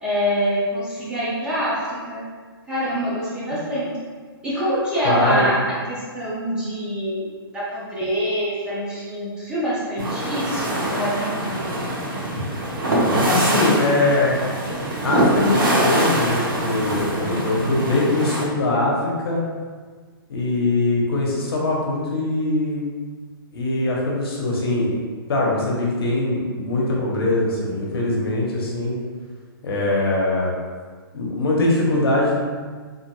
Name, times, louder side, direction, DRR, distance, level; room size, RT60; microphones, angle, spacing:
voice 1, 0.0-2.2 2.7-3.9 4.4-7.3 7.5-11.8, equal, 5° right, -9 dB, 0.6 m, -25 dB
voice 2, 5.0-5.4 13.2-14.4 15.0-19.4 20.3-22.8 23.5-25.0 25.3-29.0 29.6-30.5 31.1-32.3, left 2 dB, 75° left, -3 dB, 0.9 m, -22 dB
sound 1, 10.0-18.4, right 1 dB, 60° right, 0.8 m, -23 dB
3.4 x 2.6 x 2.2 m, 1.6 s
hypercardioid pair, 155°, 13 cm